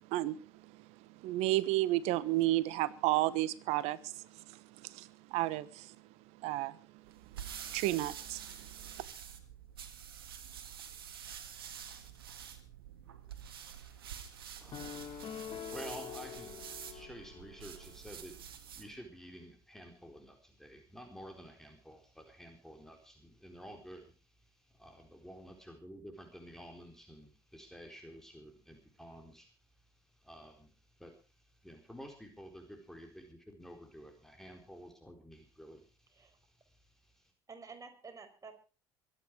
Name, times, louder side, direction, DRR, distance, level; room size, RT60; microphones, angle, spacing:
voice 1, 0.0-5.9 6.4-7.1 7.7-8.7, right 16 dB, 65° right, 18 dB, 1.1 m, -33 dB
sound 1, 7.0-18.9, right 9 dB, 85° right, 2.0 m, -48 dB
voice 2, 14.6-37.3, equal, 5° left, 3 dB, 4.1 m, -52 dB
sound 2, 14.7-18.0, left 9 dB, 45° left, 2.3 m, -45 dB
voice 3, 37.5-38.5, right 4 dB, 30° right, 5 dB, 5.1 m, -50 dB
23.0 x 10.0 x 4.7 m, 0.35 s
hypercardioid pair, 60°, 12 cm